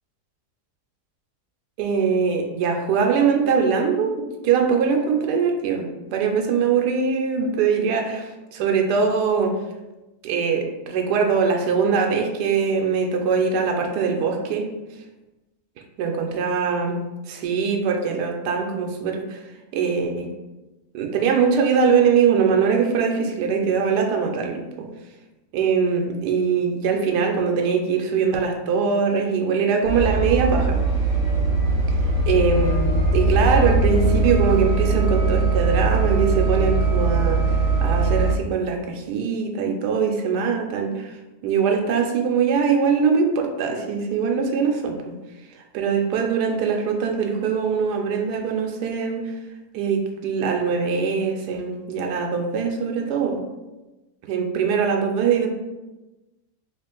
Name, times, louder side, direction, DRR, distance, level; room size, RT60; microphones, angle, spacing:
voice 1, 1.8-9.5 10.2-14.7 16.0-17.0 17.3-19.4 19.7-20.3 20.9-24.9 25.5-30.8 32.3-41.1 41.4-45.1 45.7-49.2 49.7-53.4 54.2-55.5, right 6 dB, 85° right, 3 dB, 1.2 m, -22 dB
sound 1, 29.8-38.4, right 3 dB, 45° right, 1.3 m, -20 dB
3.2 x 2.5 x 3.7 m, 1.1 s
omnidirectional pair, 1.7 m